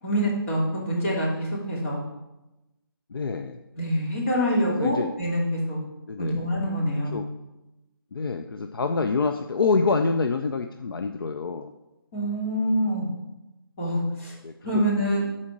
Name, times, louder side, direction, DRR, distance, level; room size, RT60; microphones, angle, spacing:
voice 1, 0.0-2.0 3.8-5.8 6.2-7.2 12.1-13.1 13.8-14.3 14.6-15.2, equal, 35° left, -5 dB, 3.1 m, -25 dB
voice 2, 3.1-3.6 4.8-5.1 6.1-6.5 7.1-7.3 8.1-11.7 14.4-14.8, left 4 dB, 70° left, 6 dB, 0.6 m, -26 dB
8.6 x 4.3 x 6.1 m, 0.98 s
figure-of-eight pair, 160°, 12 cm